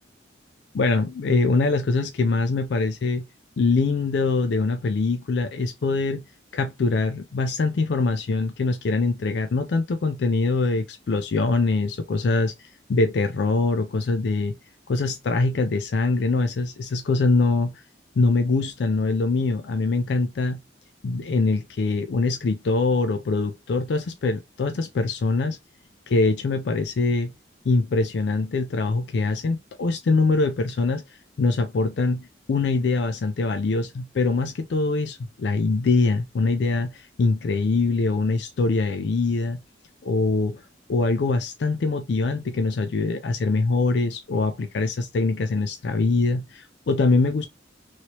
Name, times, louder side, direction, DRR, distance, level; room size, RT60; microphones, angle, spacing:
voice 1, 0.7-3.2 3.6-6.2 6.5-14.6 14.9-17.7 18.2-20.6 21.0-25.6 26.1-27.3 27.7-39.6 40.0-40.6 40.9-47.5, left 3 dB, 65° left, 0.4 m, -23 dB
3.1 x 2.9 x 2.8 m
head